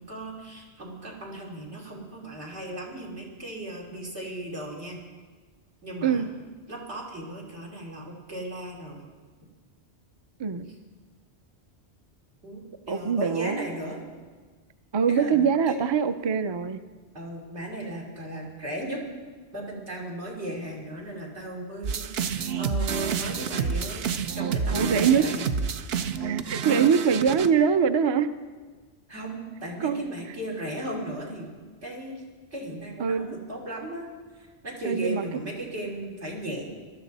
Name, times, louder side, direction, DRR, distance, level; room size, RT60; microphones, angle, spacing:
voice 1, 0.0-5.0 5.8-6.3 6.7-9.1 12.4-14.0 15.1-15.8 17.1-19.0 19.5-25.5 26.7-26.9 29.1-31.5 31.8-32.2 32.5-36.6, right 1 dB, 85° right, -3 dB, 3.7 m, -36 dB
voice 2, 10.4-10.7 12.9-13.6 14.9-16.8 24.7-25.3 26.2-28.3 29.8-30.0 33.0-33.4 34.8-35.2, right 6 dB, 40° right, 11 dB, 0.4 m, -23 dB
sound 1, 21.8-27.5, right 6 dB, 70° right, 0.9 m, -29 dB
21.5 x 13.0 x 4.1 m, 1.4 s
omnidirectional pair, 1.1 m